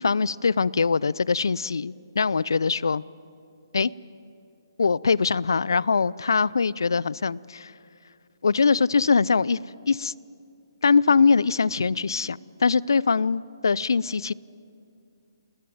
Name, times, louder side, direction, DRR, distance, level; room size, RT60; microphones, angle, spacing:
voice 1, 0.0-3.0 3.7-3.9 4.8-7.7 8.4-9.6 9.9-10.1 10.8-14.3, left 5 dB, 70° left, 23 dB, 0.5 m, -22 dB
28.0 x 19.5 x 9.4 m, 2.5 s
figure-of-eight pair, 140°, 2 cm